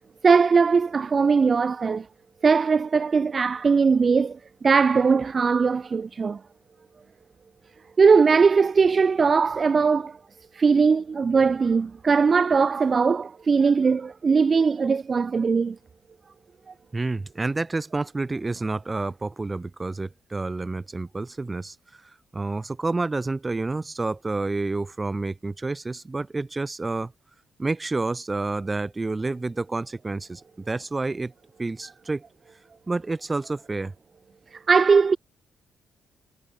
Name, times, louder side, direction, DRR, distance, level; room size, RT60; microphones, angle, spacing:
voice 1, 0.2-2.1 2.4-6.4 8.0-10.2 10.5-15.8 34.5-35.2, right 5 dB, 35° right, 0.4 m, -20 dB
voice 2, 16.9-27.1 27.6-30.4 30.7-31.3 31.6-32.2 32.9-33.9, right 3 dB, 20° right, 1.7 m, -29 dB
cardioid pair, 90°, 0 cm